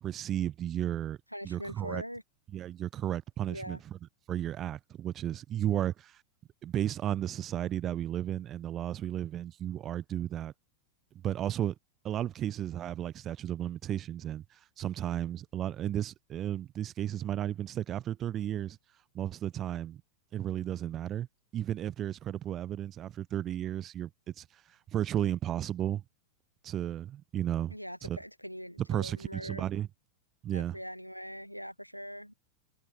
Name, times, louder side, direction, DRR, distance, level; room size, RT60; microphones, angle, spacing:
voice 1, 0.0-1.2 1.4-2.0 2.5-3.8 4.3-6.2 6.6-10.5 11.2-11.7 12.0-18.8 19.1-20.0 20.3-21.3 21.5-24.1 24.4-24.5 24.9-26.0 26.6-27.7 28.0-28.2 28.9-29.9 30.4-30.8, right 11 dB, 30° right, 0.4 m, -33 dB
voice 2, 1.3-2.2 3.5-3.8 27.7-29.6 30.5-32.3, equal, 90° left, 0.8 m, -42 dB
figure-of-eight pair, 90°, 0 cm